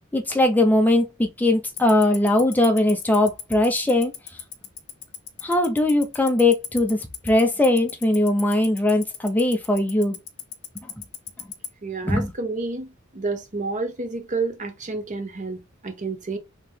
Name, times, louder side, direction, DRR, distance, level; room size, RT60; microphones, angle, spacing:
voice 1, 0.1-4.1 5.4-7.0 7.2-10.2 12.0-12.3, left 1 dB, 10° left, 0.7 m, -20 dB
Tick-tock, 1.8-11.7, left 16 dB, 80° left, 0.7 m, -33 dB
voice 2, 11.8-12.9 13.1-16.4, right 3 dB, 40° right, 0.7 m, -29 dB
3.3 x 2.9 x 3.3 m
head